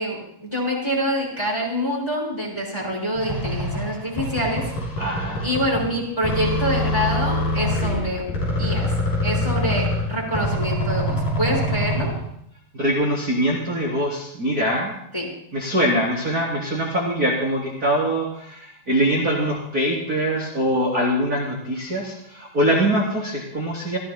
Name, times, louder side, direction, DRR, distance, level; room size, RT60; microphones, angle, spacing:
voice 1, 0.0-4.7 5.4-8.3 8.6-8.9 9.2-12.1 15.1-15.3, equal, 5° left, -2 dB, 4.5 m, -26 dB
sound 1, 3.2-6.0 6.2-12.3, left 1 dB, 50° left, 8.7 m, -25 dB
voice 2, 5.0-5.6 12.7-14.9 15.5-24.0, right 1 dB, 20° right, -5 dB, 3.2 m, -23 dB
29.0 x 16.0 x 2.2 m, 0.71 s
omnidirectional pair, 5.2 m